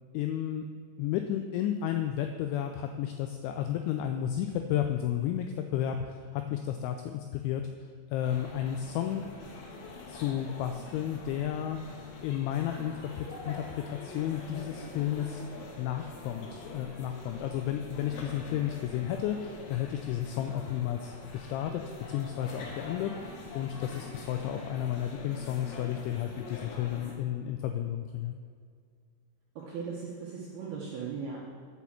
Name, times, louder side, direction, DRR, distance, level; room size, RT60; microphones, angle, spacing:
voice 1, 0.1-0.6 1.0-7.6 8.1-9.3 10.1-11.8 12.2-15.4 15.8-21.8 22.1-28.3, left 11 dB, 85° left, 6 dB, 2.6 m, -32 dB
sound 1, 8.2-27.1, left 3 dB, 70° left, 2.4 m, -44 dB
voice 2, 29.6-31.4, right 5 dB, 75° right, -4 dB, 2.3 m, -38 dB
8.2 x 6.2 x 7.1 m, 2.1 s
omnidirectional pair, 5.8 m